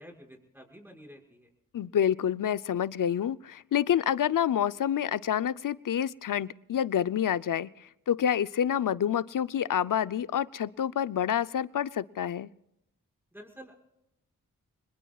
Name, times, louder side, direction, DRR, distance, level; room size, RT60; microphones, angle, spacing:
voice 1, 0.0-1.5 13.3-13.8, equal, 5° right, 0 dB, 6.1 m, -49 dB
voice 2, 1.7-7.7 8.1-12.5, left 9 dB, 65° left, 17 dB, 0.7 m, -28 dB
25.5 x 21.5 x 2.4 m, 0.84 s
cardioid pair, 45°, 35 cm